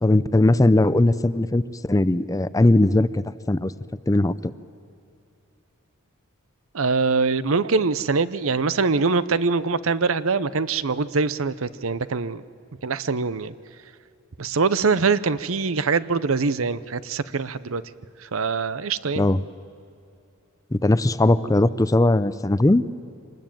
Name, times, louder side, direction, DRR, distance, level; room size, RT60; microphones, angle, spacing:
voice 1, 0.0-3.7 4.1-4.5 19.2-19.4 20.7-22.8, left 1 dB, 15° left, 15 dB, 0.5 m, -19 dB
voice 2, 6.7-12.4 12.8-13.5 14.4-17.8 18.2-19.3, right 4 dB, 70° right, 16 dB, 0.7 m, -23 dB
25.0 x 20.0 x 9.0 m, 2.6 s
head